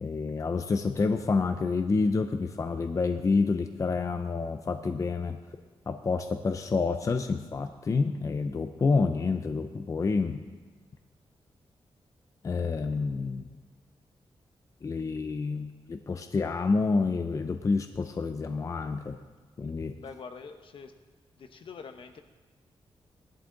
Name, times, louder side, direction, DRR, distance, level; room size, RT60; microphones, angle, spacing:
voice 1, 0.0-5.4 5.9-10.4 12.4-13.5 14.8-19.2 19.6-20.0, left 4 dB, 35° left, 7 dB, 0.6 m, -28 dB
voice 2, 20.0-20.9 21.4-22.2, left 5 dB, 60° left, 7 dB, 1.0 m, -44 dB
19.0 x 11.5 x 3.9 m, 1.4 s
wide cardioid pair, 170°, 10 cm